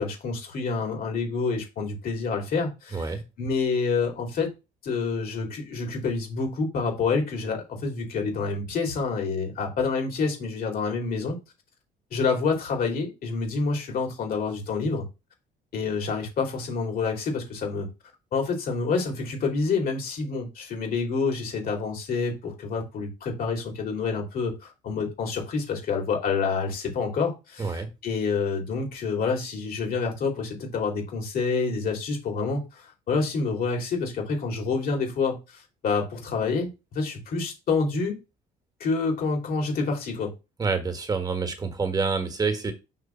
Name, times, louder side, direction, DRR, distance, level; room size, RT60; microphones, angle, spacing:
voice 1, 0.0-4.5 4.8-11.4 12.1-15.1 15.7-17.9 18.3-38.2 38.8-40.3, left 4 dB, 60° left, 2 dB, 2.8 m, -28 dB
voice 2, 40.6-42.7, right 4 dB, 20° right, 7 dB, 1.5 m, -27 dB
5.9 x 3.2 x 5.8 m, 0.27 s
cardioid pair, 110°, 17 cm